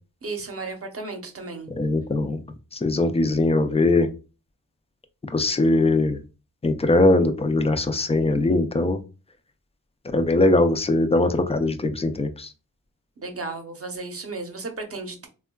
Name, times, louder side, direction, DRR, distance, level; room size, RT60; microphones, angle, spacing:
voice 1, 0.2-1.7 13.2-15.3, right 3 dB, 40° right, 5 dB, 0.8 m, -34 dB
voice 2, 1.8-2.4 2.8-4.1 5.3-6.2 6.6-9.0 10.1-12.5, left 2 dB, 20° left, 8 dB, 0.3 m, -21 dB
3.5 x 2.3 x 2.2 m, 0.33 s
wide cardioid pair, 110°, 36 cm